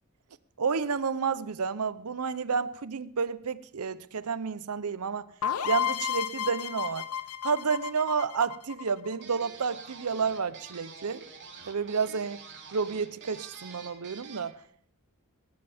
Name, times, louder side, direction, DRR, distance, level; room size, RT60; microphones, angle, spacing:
voice 1, 0.6-5.3 5.6-7.1 7.4-11.2 11.7-12.4 12.7-14.6, right 5 dB, 85° right, 0.7 m, -30 dB
sound 1, 5.4-9.2, left 9 dB, 90° left, 0.8 m, -32 dB
sound 2, 9.2-14.5, right 5 dB, 55° right, 3.2 m, -47 dB
19.5 x 11.5 x 3.5 m
head